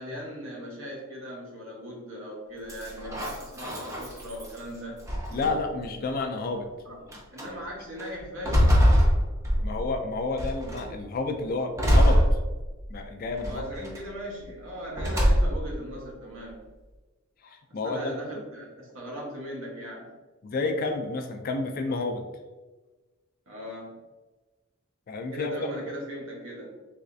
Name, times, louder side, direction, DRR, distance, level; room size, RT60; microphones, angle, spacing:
voice 1, 0.0-5.0 6.8-9.0 13.4-16.7 17.7-20.1 23.5-24.0 25.3-26.8, equal, 75° right, -2 dB, 1.0 m, -39 dB
sound 1, 2.7-4.6 5.1-5.8 6.5-6.6 7.1-7.5 8.0-9.9 10.4-10.9 11.8-12.9 13.4-14.0 14.9-15.8, equal, 15° right, 0.6 m, -23 dB
voice 2, 5.3-6.7 9.6-12.4 12.9-13.6 17.4-18.2 20.4-22.2 25.1-25.8, left 3 dB, 45° left, 5 dB, 0.4 m, -30 dB
3.3 x 3.1 x 2.6 m, 1.2 s
head